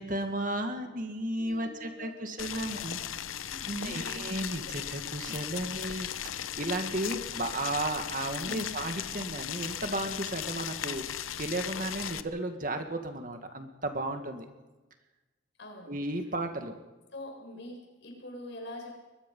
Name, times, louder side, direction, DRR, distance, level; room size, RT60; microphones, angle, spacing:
voice 1, 0.0-3.0 3.7-6.1 6.6-14.5 15.9-16.7, right 1 dB, 45° right, 6 dB, 1.9 m, -34 dB
voice 2, 1.4-2.1 2.4-3.0 3.4-4.2 4.6-4.7 8.4-8.6 15.6-15.9 17.1-19.0, left 1 dB, 60° left, 0 dB, 6.7 m, -45 dB
Boiling, 2.4-12.2, left 10 dB, 90° left, 0.8 m, -37 dB
22.5 x 22.0 x 5.5 m, 1.2 s
head